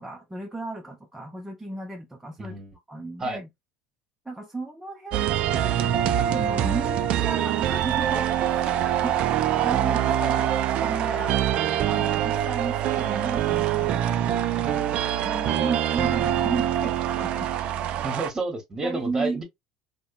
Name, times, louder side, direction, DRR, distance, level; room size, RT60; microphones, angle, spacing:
voice 1, 0.0-2.5 2.9-3.5 4.3-8.3 8.5-11.4 11.8-14.9 15.2-17.5 18.8-19.4, right 3 dB, 10° right, 0.5 m, -34 dB
voice 2, 2.4-2.8 3.2-3.4 18.0-19.4, right 2 dB, 25° right, 1.2 m, -30 dB
sound 1, 5.1-18.3, right 11 dB, 55° right, 0.3 m, -24 dB
2.7 x 2.1 x 2.4 m
hypercardioid pair, 80°, 2 cm